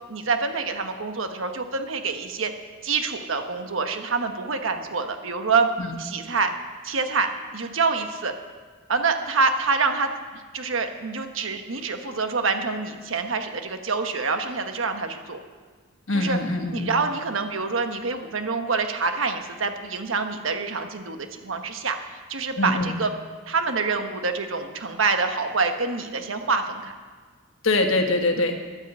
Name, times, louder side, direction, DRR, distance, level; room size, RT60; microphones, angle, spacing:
voice 1, 0.1-2.5 2.8-5.7 6.0-6.5 6.8-8.3 8.9-15.4 16.1-16.4 16.7-23.1 23.5-26.9, right 4 dB, 75° right, 6 dB, 1.2 m, -26 dB
voice 2, 16.1-17.0 22.6-23.0 27.6-28.6, left 2 dB, 75° left, 5 dB, 1.4 m, -24 dB
11.5 x 9.6 x 8.2 m, 1.5 s
head